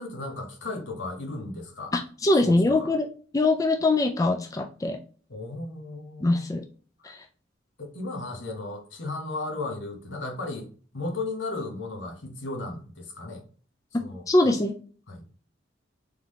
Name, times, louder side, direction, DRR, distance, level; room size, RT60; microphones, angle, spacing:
voice 1, 0.0-1.9 2.3-2.9 5.3-6.5 7.0-7.1 7.8-13.4 14.0-14.6 15.1-15.2, left 2 dB, 75° left, 3 dB, 1.2 m, -35 dB
voice 2, 1.9-3.1 3.3-5.0 6.2-6.6 7.0-7.2 14.3-14.7, left 2 dB, 20° left, 5 dB, 0.3 m, -23 dB
3.7 x 3.5 x 3.1 m, 0.41 s
head